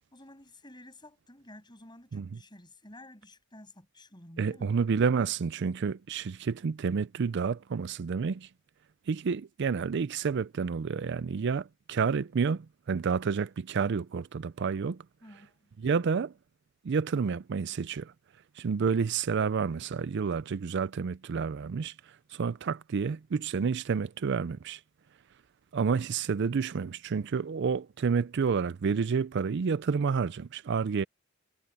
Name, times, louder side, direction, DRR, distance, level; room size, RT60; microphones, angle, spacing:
voice 1, 0.1-4.7 15.2-15.7, left 1 dB, 20° left, 7.8 m, -52 dB
voice 2, 4.4-8.5 9.1-15.0 15.8-16.3 16.8-18.1 18.6-21.9 22.3-24.8 25.7-31.0, right 5 dB, 55° right, 0.4 m, -29 dB
head